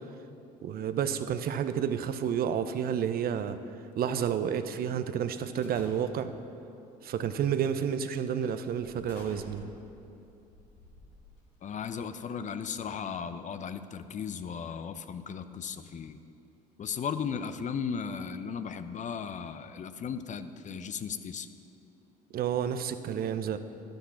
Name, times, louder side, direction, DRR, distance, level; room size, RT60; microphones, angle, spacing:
voice 1, 0.6-3.6 4.0-6.3 7.0-9.7 22.3-23.6, right 8 dB, 50° right, 11 dB, 0.7 m, -30 dB
sound 1, 5.6-6.4 7.2-7.5 8.0-8.1 8.8-11.7, left 2 dB, 80° left, 2.3 m, -52 dB
voice 2, 11.6-16.2 16.8-21.5, left 6 dB, 35° left, 11 dB, 0.7 m, -36 dB
11.5 x 10.5 x 5.7 m, 2.7 s
hypercardioid pair, 55°, 20 cm